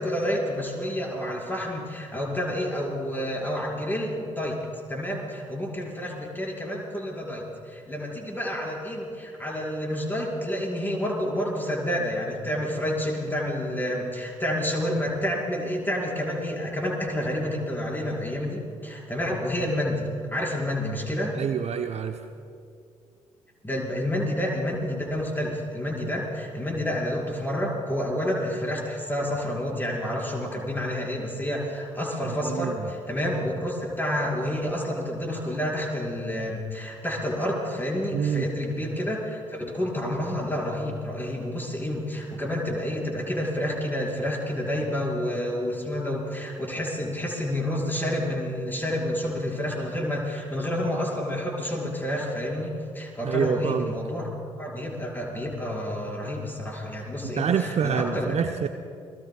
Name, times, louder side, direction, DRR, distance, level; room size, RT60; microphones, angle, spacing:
voice 1, 0.0-4.6 4.9-21.4 23.6-54.3 54.6-58.4, left 1 dB, 10° left, -2 dB, 5.3 m, -29 dB
voice 2, 21.3-22.2 32.2-32.9 38.1-38.5 53.2-53.9 57.4-58.7, right 7 dB, 40° right, 7 dB, 0.8 m, -27 dB
29.0 x 21.0 x 2.4 m, 2.3 s
figure-of-eight pair, 40°, 16 cm